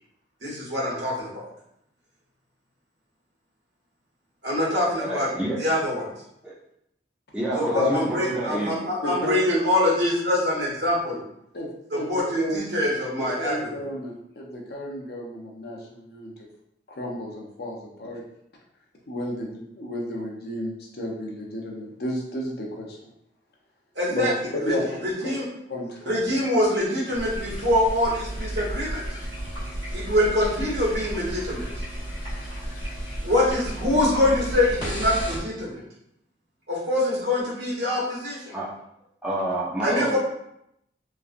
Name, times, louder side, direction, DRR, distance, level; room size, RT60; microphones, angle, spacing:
voice 1, 0.4-1.5 4.4-5.3 5.6-6.1 7.5-11.2 11.9-13.8 23.9-24.7 25.0-25.4 26.0-29.0 29.9-31.7 33.2-35.8 36.7-38.6 39.8-40.2, left 1 dB, 85° right, -7 dB, 1.4 m, -24 dB
voice 2, 5.0-5.6 6.4-6.5 7.3-8.7 38.5-38.7 39.2-40.2, right 1 dB, 5° right, -7 dB, 0.6 m, -28 dB
voice 3, 7.7-8.1 8.5-8.7 9.0-9.4 11.5-11.7 11.9-12.1 12.4-12.6 13.2-16.5 16.9-18.2 19.1-23.0 24.1-24.3 24.5-24.8 25.2-25.3 25.7-26.2, left 1 dB, 60° left, -2 dB, 0.6 m, -32 dB
sound 1, 27.1-35.4, right 1 dB, 25° left, 1.1 m, -33 dB
3.0 x 2.4 x 2.5 m, 0.78 s
head